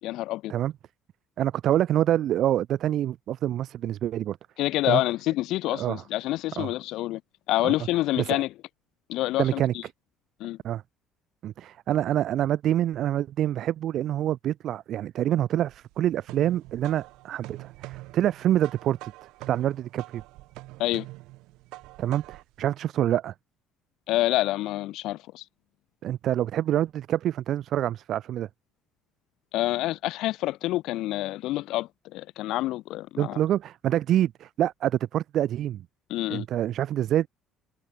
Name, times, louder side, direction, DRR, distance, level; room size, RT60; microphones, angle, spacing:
voice 1, 0.0-0.5 4.6-7.2 7.5-8.5 9.1-9.8 10.4-10.6 20.8-21.1 24.1-25.4 29.5-33.4 36.1-36.5, left 16 dB, 70° left, 1.0 m, -27 dB
voice 2, 1.4-4.4 4.9-5.0 5.8-6.0 6.6-6.7 7.6-7.7 8.2-8.3 9.4-9.7 10.6-10.8 11.4-19.1 19.5-20.2 22.0-23.3 26.0-28.5 33.2-35.8 36.3-37.3, right 12 dB, 50° right, 0.9 m, -26 dB
sound 1, 15.7-22.6, right 20 dB, 80° right, 3.3 m, -44 dB
cardioid pair, 140°, 0 cm